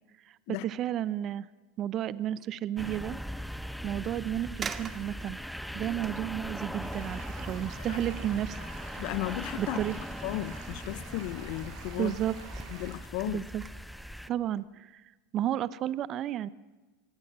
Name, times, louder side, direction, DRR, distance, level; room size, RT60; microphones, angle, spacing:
voice 1, 0.3-1.5 1.8-3.2 3.8-5.4 5.7-8.6 9.6-9.9 12.0-12.6 13.3-13.6 14.3-15.0 15.3-16.5, right 11 dB, 40° right, 0.8 m, -32 dB
sound 1, 2.3-2.6 3.2-3.3 4.1-4.2 4.6-9.6 9.9-11.3 11.6-12.1 12.5-14.0 14.4-14.6, right 6 dB, 25° right, 2.1 m, -47 dB
sound 2, 2.8-14.3, equal, ahead, 0.8 m, -40 dB
sound 3, 6.8-13.0, right 4 dB, 65° right, 6.1 m, -48 dB
voice 2, 9.0-9.8 10.2-12.1 12.7-13.5, left 18 dB, 60° left, 0.9 m, -35 dB
26.5 x 23.0 x 7.5 m
hypercardioid pair, 90°, 0 cm